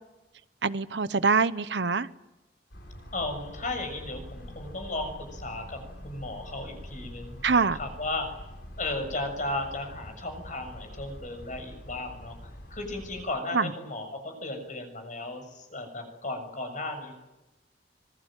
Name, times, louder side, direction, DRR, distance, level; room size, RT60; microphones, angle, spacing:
voice 1, 0.6-2.1 7.4-7.8 13.5-13.7, right 4 dB, 75° right, 14 dB, 0.9 m, -24 dB
sound 1, 2.7-13.3, equal, 70° left, 5.4 m, -45 dB
voice 2, 3.1-8.3 8.8-17.1, left 2 dB, 45° left, 6 dB, 6.9 m, -35 dB
26.0 x 22.0 x 9.0 m, 0.99 s
head